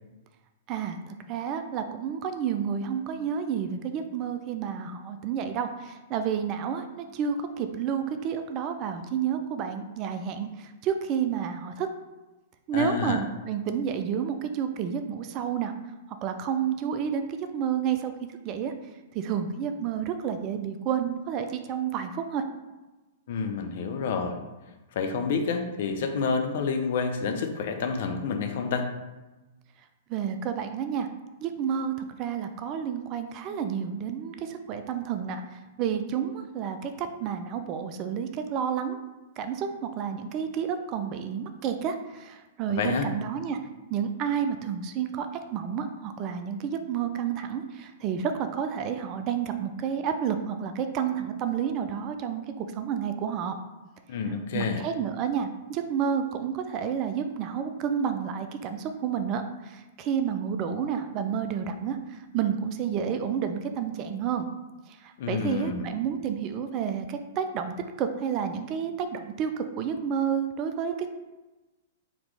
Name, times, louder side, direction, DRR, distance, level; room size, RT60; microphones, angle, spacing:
voice 1, 0.7-11.9 12.7-15.7 16.2-18.1 18.4-18.7 19.1-22.4 30.1-31.1 31.4-39.0 39.4-43.6 43.9-53.6 54.5-64.5 64.9-71.1, right 7 dB, 35° right, 8 dB, 0.4 m, -30 dB
voice 2, 12.7-13.2 23.3-24.4 25.0-28.9 42.7-43.0 54.1-54.8 65.2-65.8, left 5 dB, 55° left, 5 dB, 0.5 m, -28 dB
4.0 x 2.9 x 3.4 m, 1.1 s
figure-of-eight pair, 105°, 0 cm